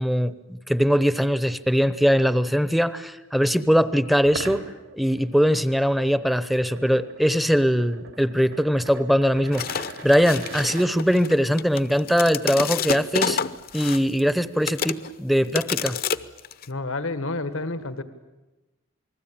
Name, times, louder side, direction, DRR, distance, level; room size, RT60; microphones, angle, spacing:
voice 1, 0.0-4.6 4.9-13.4 13.7-16.0, equal, ahead, 14 dB, 0.8 m, -21 dB
sound 1, 4.2-10.9, right 3 dB, 75° right, 3.5 m, -41 dB
sound 2, 9.5-14.3 14.7-15.1 15.5-16.6, left 6 dB, 45° left, 0.8 m, -28 dB
voice 2, 16.7-18.0, left 2 dB, 85° left, 11 dB, 1.7 m, -29 dB
28.5 x 20.5 x 8.8 m, 1.1 s
head